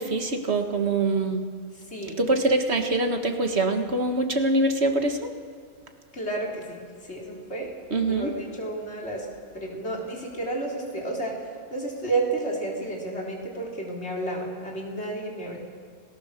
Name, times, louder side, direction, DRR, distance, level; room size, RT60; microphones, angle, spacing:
voice 1, 0.0-1.4 2.2-5.3 7.9-8.3, right 2 dB, 80° right, 5 dB, 2.0 m, -24 dB
voice 2, 1.7-2.2 6.1-7.7 8.1-9.3 9.5-15.6, right 2 dB, 85° left, -1 dB, 4.0 m, -31 dB
29.5 x 18.0 x 6.8 m, 2.1 s
omnidirectional pair, 1.1 m